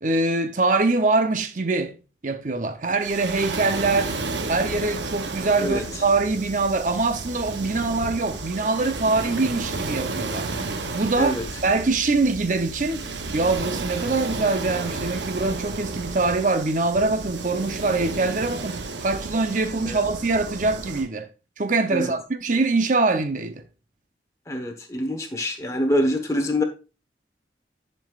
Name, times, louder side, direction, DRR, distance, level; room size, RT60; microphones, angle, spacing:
voice 1, 0.0-1.9 2.2-4.1 4.5-10.5 10.9-13.0 13.3-21.3 21.6-23.6, right 3 dB, 45° right, 0.6 m, -23 dB
Waves surf, 3.0-21.1, right 3 dB, 75° right, 0.8 m, -32 dB
sound 1, 3.7-17.0, left 3 dB, 40° left, 1.6 m, -45 dB
voice 2, 24.5-26.6, left 1 dB, 15° left, 1.1 m, -25 dB
10.5 x 5.4 x 2.4 m
head